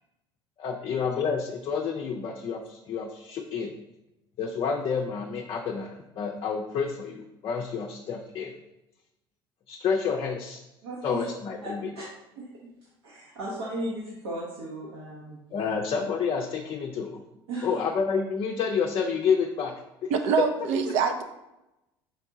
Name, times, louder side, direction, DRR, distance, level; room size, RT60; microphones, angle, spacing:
voice 1, 0.6-3.7 4.4-8.6 9.7-10.6 11.0-11.9 15.5-17.2 17.6-19.7 20.0-20.1, left 6 dB, 40° left, 1 dB, 0.5 m, -29 dB
voice 2, 10.8-11.2 11.6-12.0 12.4-12.7 13.0-15.4 17.5-17.8, right 1 dB, 75° right, -6 dB, 1.0 m, -36 dB
voice 3, 20.1-21.2, right 6 dB, 60° right, 6 dB, 0.5 m, -24 dB
4.4 x 3.8 x 2.6 m, 0.93 s
hypercardioid pair, 65°, 13 cm